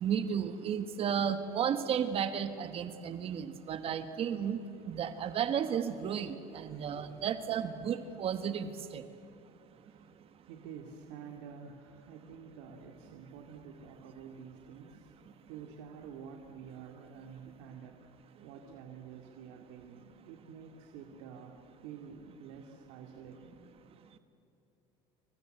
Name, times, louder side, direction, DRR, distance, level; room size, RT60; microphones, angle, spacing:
voice 1, 0.0-4.6 4.9-9.0, right 8 dB, 45° right, 10 dB, 1.5 m, -33 dB
voice 2, 10.5-15.2 15.5-23.6, right 7 dB, 85° right, 2 dB, 2.5 m, -49 dB
28.5 x 24.5 x 8.0 m, 2.8 s
cardioid pair, 115°, 13 cm